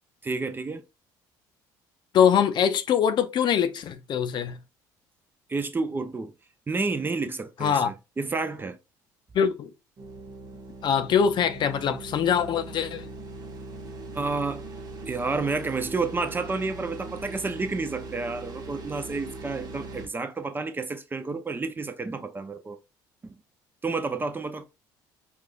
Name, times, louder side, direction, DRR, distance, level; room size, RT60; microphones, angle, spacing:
voice 1, 0.2-0.8 5.5-6.3 6.7-8.8 14.1-14.6 15.1-22.8 23.2-23.3 23.8-24.7, right 3 dB, 20° right, 0.5 m, -30 dB
voice 2, 2.1-4.6 7.6-7.9 9.3-9.7 10.8-13.1, left 8 dB, 50° left, 0.5 m, -23 dB
sound 1, 10.0-20.1, right 2 dB, 45° right, 1.0 m, -40 dB
4.8 x 2.4 x 2.3 m
supercardioid pair, 80°, 10 cm